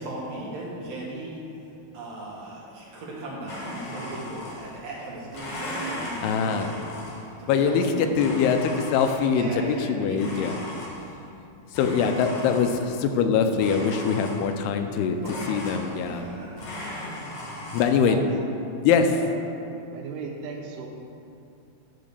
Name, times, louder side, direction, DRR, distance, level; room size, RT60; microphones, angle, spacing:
voice 1, 0.0-1.4 1.9-8.4 9.3-10.6 15.2-16.6, right 1 dB, 60° right, -5 dB, 2.0 m, -37 dB
Domestic sounds home sounds, 3.5-4.9 5.3-7.4 8.1-9.4 10.1-11.3 11.7-13.0 13.6-14.7 15.2-16.3 16.6-17.8, left 1 dB, 60° left, 1.7 m, -37 dB
voice 2, 6.2-6.7 7.5-7.8 8.2-9.5 9.9-10.5 11.7-15.2 15.5-16.3 17.7-18.2 18.8-19.2, left 6 dB, 85° left, 6 dB, 2.5 m, -23 dB
voice 3, 19.1-19.4 19.8-20.9, right 6 dB, 80° right, 0 dB, 2.8 m, -37 dB
10.5 x 3.9 x 6.6 m, 2.6 s
omnidirectional pair, 4.7 m